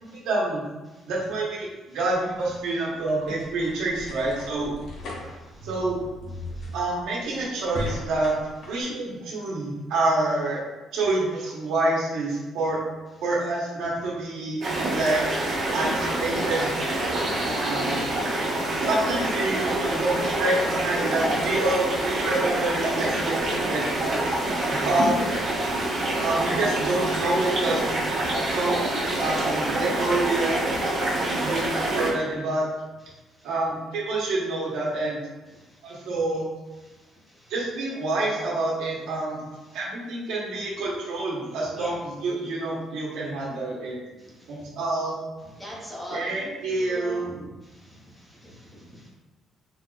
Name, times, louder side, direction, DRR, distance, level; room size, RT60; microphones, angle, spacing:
voice 1, 0.0-0.6 1.1-4.8 5.6-6.0 6.7-8.3 8.7-10.6 10.9-12.8 13.2-14.6 14.9-15.3 15.7-16.7 17.4-18.0 18.4-18.5 18.8-24.3 24.7-25.1 26.1-28.1 28.4-28.8 29.2-30.6 31.4-32.7 33.4-35.2 35.8-36.4 37.5-39.4 39.7-44.0 44.5-45.2 46.1-47.3, right 2 dB, 80° right, -5 dB, 1.1 m, -27 dB
sound 1, 2.2-8.8, left 1 dB, 55° left, 0.8 m, -38 dB
sound 2, 14.6-32.1, right 1 dB, 40° right, 1.1 m, -26 dB
voice 2, 45.6-47.2 47.6-49.1, equal, 10° left, -5 dB, 0.8 m, -41 dB
3.9 x 3.8 x 2.4 m, 1.1 s
cardioid pair, 160°, 0 cm